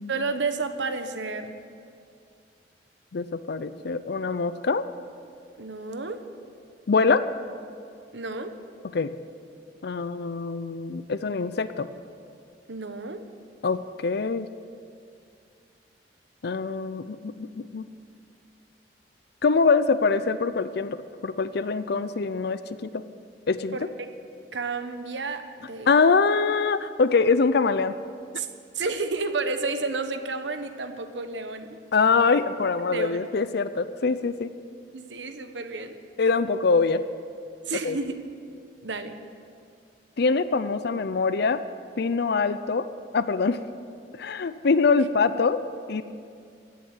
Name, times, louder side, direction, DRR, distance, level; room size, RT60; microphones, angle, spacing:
voice 1, 0.1-1.6 5.6-6.2 8.1-8.5 12.7-13.2 23.7-24.1 24.5-25.9 28.3-28.5 28.7-31.7 32.9-33.2 34.9-36.0 37.7-38.2 38.8-39.2, right 3 dB, 85° right, 8 dB, 1.1 m, -31 dB
voice 2, 3.1-4.9 6.9-7.3 8.9-9.1 9.8-11.9 13.6-14.5 16.4-17.9 19.4-23.0 23.5-23.8 25.9-28.0 31.9-34.5 36.2-37.0 37.8-38.0 40.2-41.6 42.0-42.9 43.1-43.6 44.2-45.6 45.9-46.0, left 4 dB, 65° left, 13 dB, 0.5 m, -24 dB
16.0 x 7.6 x 9.7 m, 2.3 s
head